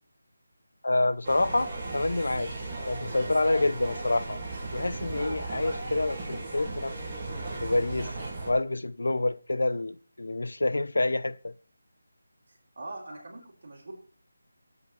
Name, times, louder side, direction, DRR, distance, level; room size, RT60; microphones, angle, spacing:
voice 1, 0.8-2.5 2.9-4.4 4.7-7.0 7.6-8.1 8.5-11.5, left 2 dB, 75° left, 0.6 m, -27 dB
sound 1, 1.2-8.5, right 2 dB, 15° right, 1.5 m, -36 dB
voice 2, 12.7-13.9, right 2 dB, 35° right, 3.2 m, -42 dB
13.0 x 7.9 x 4.4 m
figure-of-eight pair, 180°, 0 cm